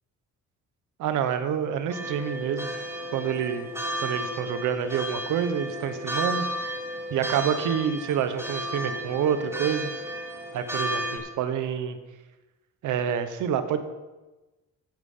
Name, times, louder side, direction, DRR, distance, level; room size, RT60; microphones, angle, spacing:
voice 1, 1.0-2.7 3.1-3.7 4.0-6.8 7.1-9.9 10.5-12.0 12.8-13.8, right 8 dB, 85° right, 10 dB, 1.2 m, -27 dB
sound 1, 1.9-11.2, equal, 10° right, 5.0 m, -33 dB
15.0 x 7.7 x 5.6 m, 1.1 s
cardioid pair, 90°, 30 cm